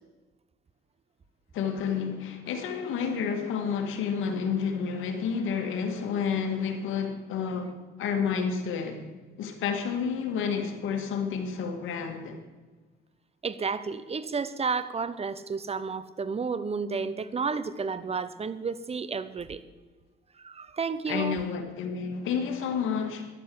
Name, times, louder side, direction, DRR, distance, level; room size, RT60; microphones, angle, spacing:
voice 1, 1.5-7.7 8.0-9.0 9.4-12.4 21.1-23.3, left 6 dB, 85° left, 2.2 m, -30 dB
voice 2, 13.4-19.6 20.4-21.4, right 5 dB, 30° right, 1.0 m, -31 dB
12.5 x 11.0 x 7.9 m
cardioid pair, 90°, 20 cm